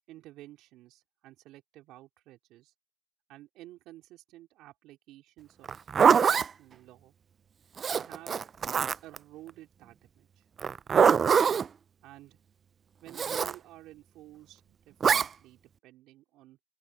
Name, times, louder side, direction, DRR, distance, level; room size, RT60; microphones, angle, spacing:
voice 1, 0.1-2.7 3.3-5.7 6.0-7.1 7.9-8.4 9.0-10.4 12.0-12.4 13.0-16.6, right 16 dB, 55° right, 3.2 m, -52 dB
Zipper (clothing), 5.6-6.5 7.8-9.2 10.6-11.7 13.1-13.5 15.0-15.3, right 7 dB, 30° right, 0.4 m, -23 dB
open air
supercardioid pair, 110°, 0 cm